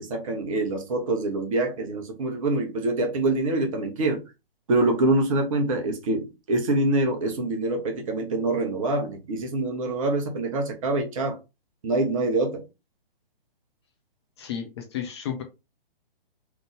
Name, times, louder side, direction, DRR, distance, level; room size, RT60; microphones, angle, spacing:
voice 1, 0.0-4.2 4.7-11.4 11.8-12.6, right 2 dB, 35° right, 1.2 m, -25 dB
voice 2, 14.4-15.4, left 8 dB, 30° left, 0.7 m, -32 dB
3.8 x 3.5 x 3.4 m
figure-of-eight pair, 130°, 29 cm